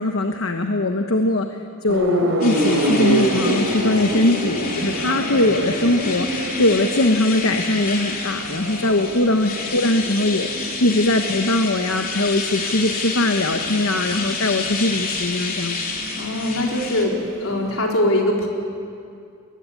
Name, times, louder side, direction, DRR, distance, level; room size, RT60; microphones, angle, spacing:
voice 1, 0.0-1.5 1.8-10.5 10.8-15.8, left 2 dB, 70° left, 5 dB, 1.2 m, -21 dB
sound 1, 1.9-17.8, right 1 dB, 75° right, 3.6 m, -27 dB
sound 2, 2.4-17.1, left 4 dB, 45° left, 3.0 m, -29 dB
voice 2, 8.8-9.3 16.2-17.1 17.4-18.5, left 1 dB, 90° left, 0 dB, 3.9 m, -22 dB
22.0 x 20.0 x 8.6 m, 2.4 s
head